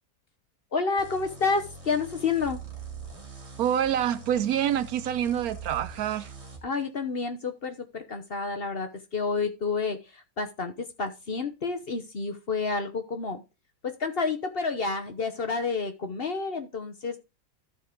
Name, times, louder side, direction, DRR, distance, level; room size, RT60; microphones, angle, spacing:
voice 1, 0.7-2.6 6.6-13.4 13.8-17.2, left 4 dB, 45° left, 1.0 m, -29 dB
sound 1, 1.0-6.6, right 4 dB, 45° right, 2.4 m, -43 dB
voice 2, 3.6-6.3, right 10 dB, 75° right, 1.1 m, -26 dB
13.0 x 4.6 x 3.7 m
omnidirectional pair, 1.7 m